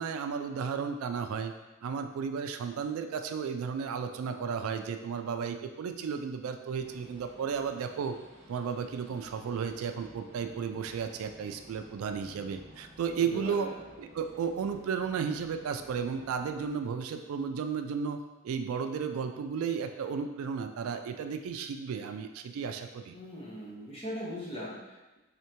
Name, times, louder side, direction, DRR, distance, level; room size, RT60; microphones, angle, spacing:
voice 1, 0.0-1.5 1.8-8.2 8.5-13.7 14.0-18.2 18.4-23.2, right 6 dB, 80° right, 8 dB, 0.3 m, -34 dB
sound 1, 6.7-16.7, equal, 30° right, 1.0 m, -55 dB
voice 2, 13.1-13.8 23.1-25.2, equal, 30° left, -4 dB, 0.8 m, -40 dB
3.6 x 3.3 x 2.9 m, 1.1 s
head